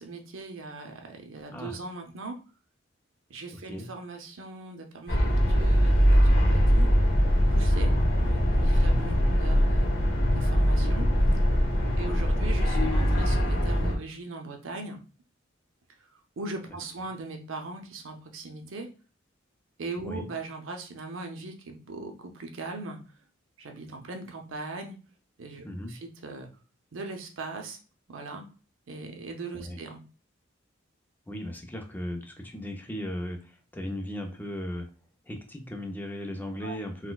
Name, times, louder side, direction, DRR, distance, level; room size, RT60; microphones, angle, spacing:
voice 1, 0.0-2.4 3.3-6.9 7.5-7.9 8.2-11.1 12.0-15.0 16.1-18.9 19.8-23.0 23.6-25.0 25.4-26.5 26.9-27.8 28.1-28.4 28.9-30.0 36.6-36.8, right 3 dB, 90° right, 4 dB, 0.6 m, -40 dB
sound 1, 5.1-14.0, equal, 55° left, 0.9 m, -22 dB
voice 2, 8.7-9.2 12.0-12.2 16.7-16.8 20.0-20.3 25.6-25.9 29.6-29.8 31.3-34.9 35.3-37.1, left 1 dB, 10° left, 3 dB, 0.4 m, -37 dB
4.0 x 2.2 x 2.3 m, 0.35 s
head